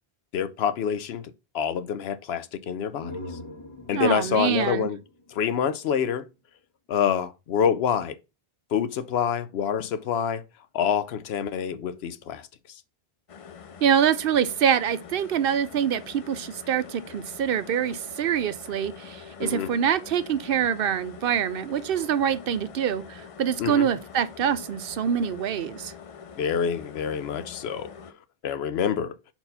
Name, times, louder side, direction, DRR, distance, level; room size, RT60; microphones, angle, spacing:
voice 1, 0.3-3.1 3.9-5.0 5.3-6.3 6.9-8.2 8.7-10.4 10.7-12.5 19.4-19.7 23.6-23.9 26.4-27.9 28.4-29.1, left 8 dB, 80° left, 0.9 m, -26 dB
sound 1, 2.9-6.3, left 2 dB, 30° left, 1.3 m, -43 dB
voice 2, 3.9-4.9 13.8-25.9, right 8 dB, 70° right, 0.7 m, -25 dB
sound 2, 13.3-28.1, left 6 dB, 50° left, 0.4 m, -45 dB
4.5 x 4.0 x 5.3 m
omnidirectional pair, 1.0 m